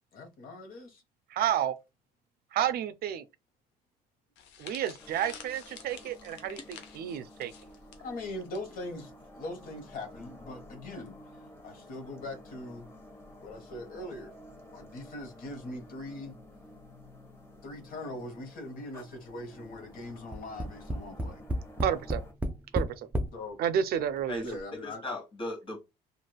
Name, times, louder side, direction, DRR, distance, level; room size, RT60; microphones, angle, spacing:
voice 1, 0.1-1.0 8.0-11.2 11.6-12.9 13.4-14.3 14.7-16.4 17.6-21.4 23.3-23.6 24.4-25.0, left 2 dB, 60° left, 1.0 m, -41 dB
voice 2, 1.3-1.7 2.5-3.3 4.6-7.5 21.8-22.2 22.7-23.1 23.6-24.4, right 9 dB, 65° right, 0.4 m, -30 dB
sound 1, 4.4-8.6 8.9-9.1 10.0-10.3, left 8 dB, 90° left, 0.6 m, -50 dB
sound 2, 5.0-22.3, left 1 dB, 15° left, 0.8 m, -52 dB
Tap, 20.3-23.4 24.2-24.3 24.6-24.7, equal, 10° right, 0.4 m, -32 dB
voice 3, 24.3-25.8, left 1 dB, 30° left, 1.3 m, -38 dB
3.1 x 2.5 x 2.3 m
cardioid pair, 110°, 17 cm